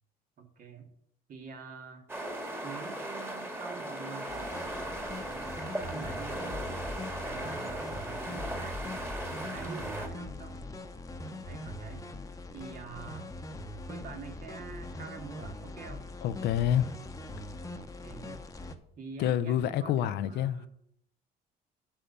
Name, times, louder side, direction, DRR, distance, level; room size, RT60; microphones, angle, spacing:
voice 1, 0.4-0.9 1.3-2.1 2.6-4.5 5.2-6.7 7.2-8.8 9.3-10.6 11.4-12.1 12.5-13.3 13.9-16.1 17.8-18.4 19.0-20.7, right 5 dB, 55° right, 2.0 m, -46 dB
sound 1, 2.1-10.1, right 1 dB, 15° right, 1.9 m, -38 dB
sound 2, 4.3-18.8, left 2 dB, 20° left, 1.0 m, -41 dB
voice 2, 16.2-16.9 19.2-20.7, left 11 dB, 80° left, 0.6 m, -28 dB
8.8 x 5.7 x 6.8 m
cardioid pair, 110°, 17 cm